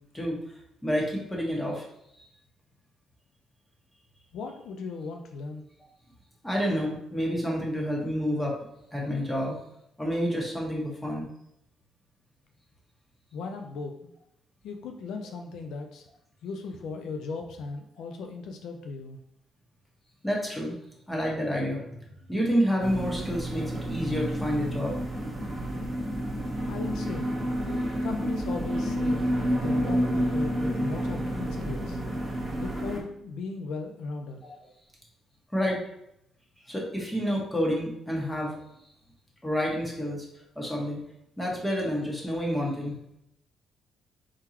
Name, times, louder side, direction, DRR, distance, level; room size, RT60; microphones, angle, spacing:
voice 1, 0.8-1.9 2.1-2.3 6.4-8.6 8.9-9.6 10.0-11.3 20.2-20.8 21.1-22.0 22.3-25.0 34.4-34.5 35.5-35.8 36.7-38.6 39.4-40.3 40.5-41.0 41.4-42.9, equal, 10° left, -2 dB, 1.5 m, -29 dB
voice 2, 4.3-5.7 13.3-13.9 14.6-16.1 16.4-19.2 26.7-27.3 28.0-32.0 32.6-34.4, left 4 dB, 80° left, 4 dB, 0.5 m, -37 dB
sound 1, 22.8-33.0, equal, 30° right, 1.5 m, -29 dB
4.5 x 3.8 x 2.9 m, 0.77 s
cardioid pair, 90°, 0 cm